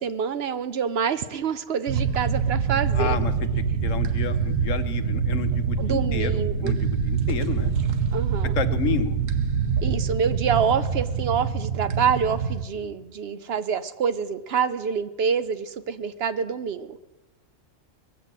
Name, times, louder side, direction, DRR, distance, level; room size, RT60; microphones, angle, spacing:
voice 1, 0.0-3.2 5.8-6.7 8.1-8.5 9.8-17.0, right 7 dB, 60° right, 11 dB, 0.8 m, -26 dB
sound 1, 1.9-12.6, right 6 dB, 85° right, 1.3 m, -25 dB
voice 2, 2.9-3.3 3.8-7.7 8.5-9.2, left 7 dB, 85° left, 9 dB, 1.3 m, -30 dB
20.0 x 7.7 x 7.5 m, 1.1 s
omnidirectional pair, 1.3 m